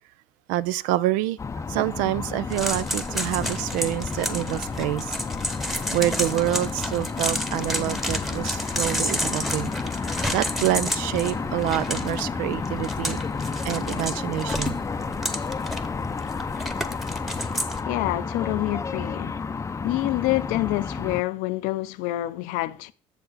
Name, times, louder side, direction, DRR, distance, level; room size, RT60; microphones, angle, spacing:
voice 1, 0.5-1.4 1.7-5.2 5.6-9.7 10.3-13.2 13.6-14.8, right 15 dB, 85° right, 0.4 m, -27 dB
sound 1, 1.4-21.2, left 5 dB, 20° left, 0.5 m, -31 dB
sound 2, 2.5-17.8, equal, ahead, 1.0 m, -31 dB
voice 2, 17.9-19.3 19.8-22.9, left 17 dB, 80° left, 0.5 m, -27 dB
7.9 x 6.9 x 4.0 m
supercardioid pair, 90°, 13 cm